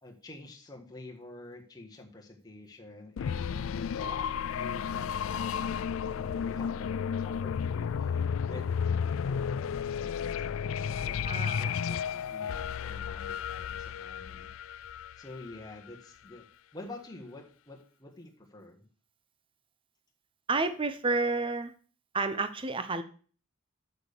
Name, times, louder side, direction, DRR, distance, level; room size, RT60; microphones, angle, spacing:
voice 1, 0.0-14.9 15.2-16.5 16.7-18.9, left 2 dB, 20° left, 0 dB, 1.5 m, -49 dB
sound 1, 3.2-15.9, left 7 dB, 75° left, 0.3 m, -33 dB
voice 2, 11.2-11.8 20.5-21.7 22.1-23.0, right 3 dB, 25° right, 10 dB, 0.8 m, -30 dB
6.8 x 6.5 x 6.7 m, 0.42 s
head